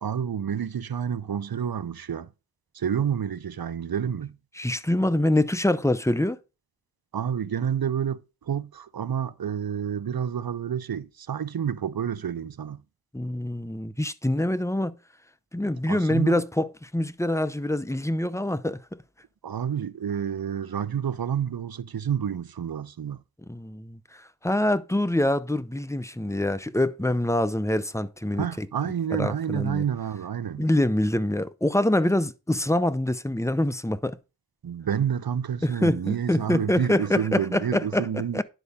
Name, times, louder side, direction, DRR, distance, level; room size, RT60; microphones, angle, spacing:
voice 1, 0.0-2.3 2.7-4.3 7.1-12.8 15.9-16.4 19.4-23.2 28.3-30.6 34.6-38.4, right 8 dB, 80° right, 0.6 m, -29 dB
voice 2, 4.6-6.4 13.1-15.0 15.5-18.8 23.5-28.7 29.1-29.8 30.6-34.2 35.6-38.1 38.3-38.4, left 1 dB, 10° left, 0.6 m, -25 dB
10.5 x 4.7 x 5.5 m
wide cardioid pair, 50°, 35 cm